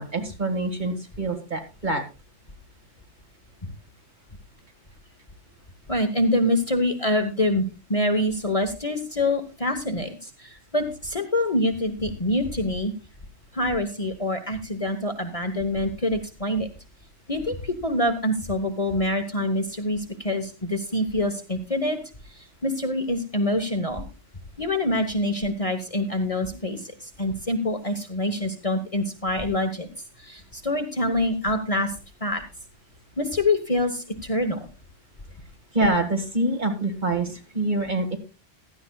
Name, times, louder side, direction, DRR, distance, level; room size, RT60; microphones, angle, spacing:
voice 1, 0.0-2.0 35.7-38.2, right 2 dB, 40° right, 5 dB, 1.9 m, -25 dB
voice 2, 5.9-12.9 13.5-16.7 17.3-22.0 22.4-24.0 24.6-29.9 30.2-31.9 32.2-32.4 33.2-34.7, left 1 dB, 30° left, 6 dB, 1.2 m, -25 dB
16.0 x 12.0 x 2.3 m, 0.29 s
omnidirectional pair, 1.2 m